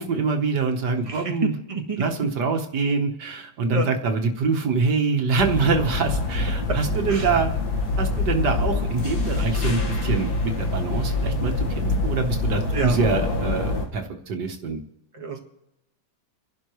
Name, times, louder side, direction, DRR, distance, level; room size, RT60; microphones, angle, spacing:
voice 1, 0.0-1.5 2.0-7.5 8.0-14.8, right 4 dB, 75° right, 4 dB, 1.8 m, -25 dB
voice 2, 1.0-2.0 3.7-3.9 6.7-6.8 7.1-7.3 12.7-13.0 15.1-15.4, right 3 dB, 20° right, 2 dB, 1.5 m, -28 dB
sound 1, 5.4-13.8, left 2 dB, 65° left, 2.1 m, -25 dB
29.5 x 11.5 x 3.1 m, 0.88 s
omnidirectional pair, 1.8 m